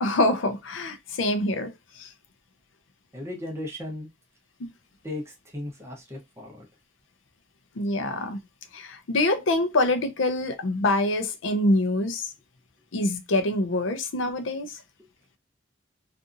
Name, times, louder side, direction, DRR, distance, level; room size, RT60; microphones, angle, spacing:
voice 1, 0.0-1.7 2.0-2.1 7.8-8.4 8.7-12.3 12.9-14.8, left 2 dB, 90° left, 0.6 m, -25 dB
voice 2, 3.1-4.1 5.0-6.6 15.0-15.1, left 1 dB, 15° right, 0.8 m, -36 dB
2.7 x 2.5 x 2.5 m
head